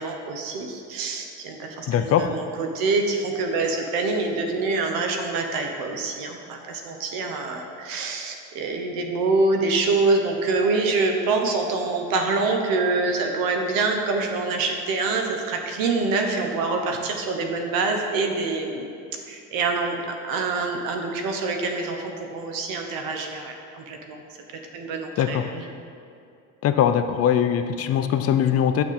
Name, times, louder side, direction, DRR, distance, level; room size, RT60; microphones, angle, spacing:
voice 1, 0.0-18.9 19.3-20.0 20.2-24.2 24.7-25.7, right 3 dB, 85° right, 3 dB, 0.9 m, -25 dB
voice 2, 1.9-2.3 25.2-25.4 26.6-28.8, left 9 dB, 45° left, 9 dB, 0.4 m, -21 dB
6.4 x 5.7 x 4.1 m, 2.5 s
cardioid pair, 120°, 34 cm